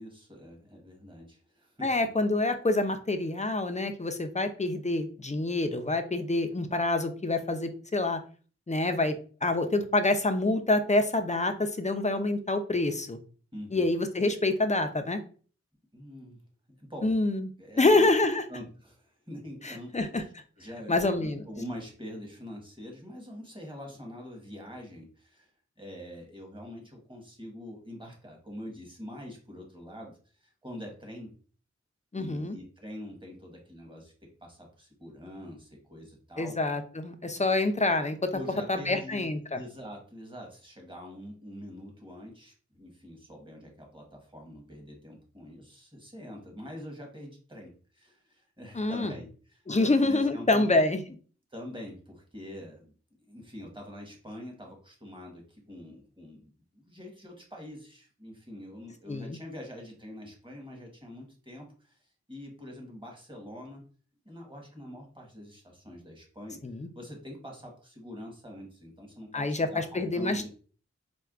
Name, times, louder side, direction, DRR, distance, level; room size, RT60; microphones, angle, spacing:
voice 1, 0.0-1.9 13.5-13.9 15.9-16.4 16.7-17.2 17.6-18.1 18.5-20.3 20.6-31.3 32.1-34.1 34.4-36.6 38.3-50.8 51.5-52.9 53.2-63.9 64.2-66.6 66.9-70.5, equal, 15° right, 1 dB, 1.3 m, -44 dB
voice 2, 1.8-8.2 8.7-13.2 13.7-15.2 17.0-17.5 17.8-18.4 19.6-20.2 20.9-21.4 32.1-32.6 36.4-38.3 38.7-39.6 48.7-49.1 49.7-51.0 59.1-59.4 66.6-66.9 69.3-70.5, left 2 dB, 25° left, 7 dB, 0.5 m, -27 dB
4.4 x 2.2 x 2.4 m, 0.40 s
wide cardioid pair, 45°, 29 cm